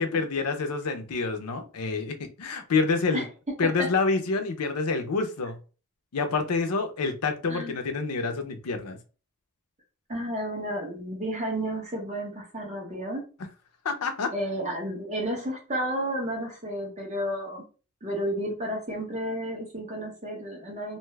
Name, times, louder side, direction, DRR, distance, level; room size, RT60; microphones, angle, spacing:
voice 1, 0.0-3.3 3.6-5.6 6.1-9.0 13.8-14.3, left 4 dB, 90° left, 0.6 m, -27 dB
voice 2, 3.1-3.9 7.5-7.8 10.1-13.2 14.3-17.6 18.0-21.0, right 1 dB, 30° right, 1.1 m, -32 dB
2.6 x 2.3 x 3.2 m
head